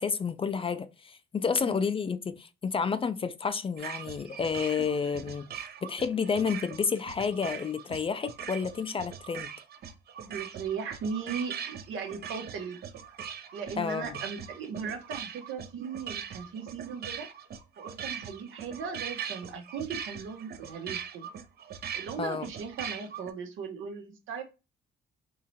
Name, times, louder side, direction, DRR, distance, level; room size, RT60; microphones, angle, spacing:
voice 1, 0.0-5.5 5.8-9.5 13.8-14.2 22.2-22.5, left 5 dB, 30° left, 0.4 m, -30 dB
voice 2, 1.5-1.8 10.2-12.8 13.5-17.3 17.8-21.3 21.9-24.4, right 6 dB, 80° right, 1.0 m, -38 dB
sound 1, 3.8-23.3, right 8 dB, 55° right, 0.5 m, -41 dB
3.8 x 3.1 x 2.7 m
cardioid pair, 90°, 20 cm